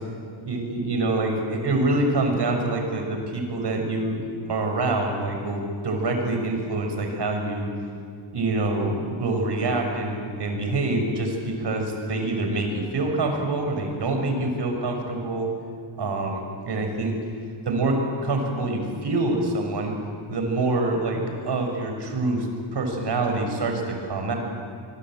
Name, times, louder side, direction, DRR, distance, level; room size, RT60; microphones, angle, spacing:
voice 1, 0.4-7.7 8.3-15.5 16.0-17.2 17.6-19.9 20.3-22.5 22.7-24.4, right 2 dB, 55° right, 3 dB, 6.4 m, -26 dB
25.0 x 22.0 x 9.1 m, 2.2 s
cardioid pair, 80°, 48 cm